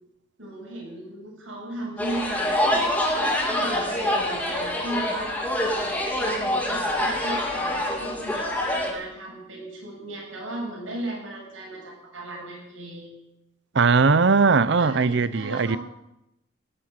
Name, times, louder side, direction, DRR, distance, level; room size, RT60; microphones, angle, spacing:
voice 1, 0.4-2.8 3.2-5.3 6.2-13.1 14.8-15.8, right 1 dB, 85° right, 7.7 m, -36 dB
sound 1, 2.0-8.9, left 1 dB, 10° left, 3.1 m, -25 dB
voice 2, 13.7-15.8, right 4 dB, 60° right, 0.6 m, -19 dB
18.5 x 8.9 x 8.7 m
head